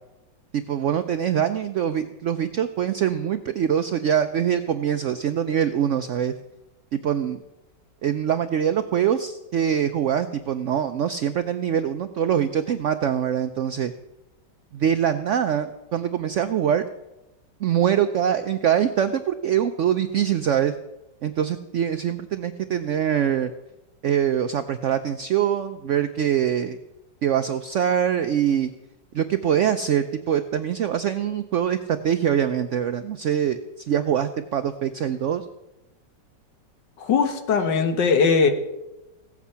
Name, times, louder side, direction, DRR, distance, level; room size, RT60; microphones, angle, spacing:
voice 1, 0.5-6.3 6.9-7.4 8.0-13.9 14.7-16.8 17.6-20.7 21.2-23.5 24.0-26.8 27.2-28.7 29.1-35.4, right 9 dB, 90° right, 10 dB, 0.6 m, -23 dB
voice 2, 37.0-38.5, left 5 dB, 75° left, 7 dB, 1.9 m, -20 dB
16.0 x 8.4 x 5.6 m, 0.97 s
omnidirectional pair, 1.9 m